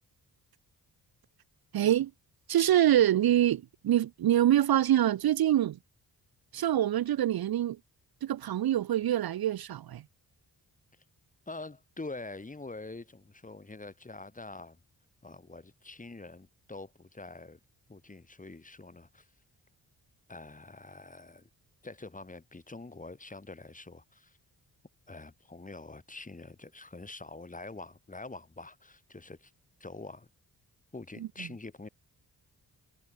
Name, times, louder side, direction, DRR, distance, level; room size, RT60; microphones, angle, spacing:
voice 1, 1.7-2.1 2.5-5.8 6.5-7.8 8.2-10.0, right 12 dB, 60° right, 0.6 m, -25 dB
voice 2, 11.5-14.8 15.2-17.6 17.9-19.3 20.3-21.5 21.8-24.4 25.1-29.5 29.8-30.3 30.9-31.9, left 3 dB, 20° left, 1.4 m, -45 dB
cardioid pair, 55°, 41 cm